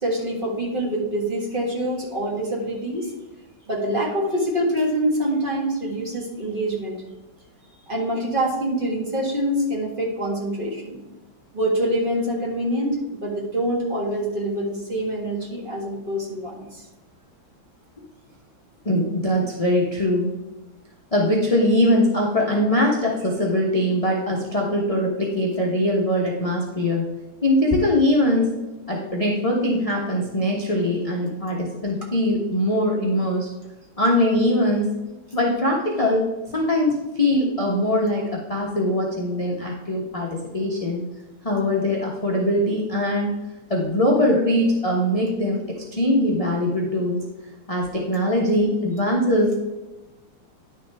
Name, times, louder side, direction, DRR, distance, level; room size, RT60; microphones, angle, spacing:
voice 1, 0.0-3.1 3.7-7.0 7.9-11.0 11.5-16.9, right 1 dB, 25° right, -4 dB, 1.9 m, -25 dB
voice 2, 18.8-20.3 21.1-27.1 27.4-28.5 28.9-33.5 34.0-34.9 35.3-36.3 36.5-41.1 41.4-43.3 43.7-47.2 47.7-49.6, left 1 dB, 25° left, -2 dB, 0.8 m, -22 dB
10.5 x 6.4 x 3.5 m, 1.1 s
omnidirectional pair, 2.2 m